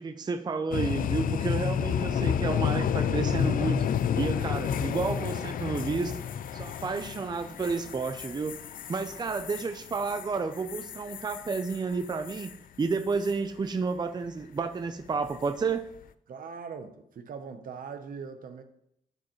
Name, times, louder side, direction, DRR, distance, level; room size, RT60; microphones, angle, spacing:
voice 1, 0.0-6.2 6.5-8.6 8.9-12.5 12.8-15.9, right 4 dB, 30° right, 8 dB, 0.5 m, -31 dB
sound 1, 0.7-12.6 12.9-13.3 15.3-15.6, left 8 dB, 70° left, 0.4 m, -31 dB
voice 2, 16.3-18.6, right 6 dB, 70° right, 8 dB, 0.9 m, -41 dB
12.0 x 5.2 x 3.1 m, 0.74 s
cardioid pair, 100°, 15 cm